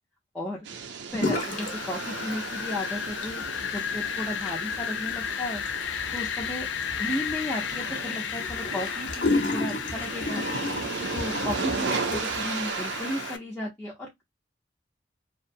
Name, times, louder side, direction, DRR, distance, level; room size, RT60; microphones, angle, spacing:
voice 1, 0.3-0.7 1.1-5.6 6.1-6.7 7.0-10.5 11.1-14.2, left 1 dB, 5° left, 0.6 m, -34 dB
sound 1, 0.7-13.3, right 5 dB, 85° right, 0.5 m, -36 dB
sound 2, 1.1-1.7 2.0-2.7 3.1-12.5, left 2 dB, 45° left, 0.7 m, -33 dB
Wind, 1.4-13.4, left 8 dB, 90° left, 0.4 m, -34 dB
2.6 x 2.1 x 2.5 m
head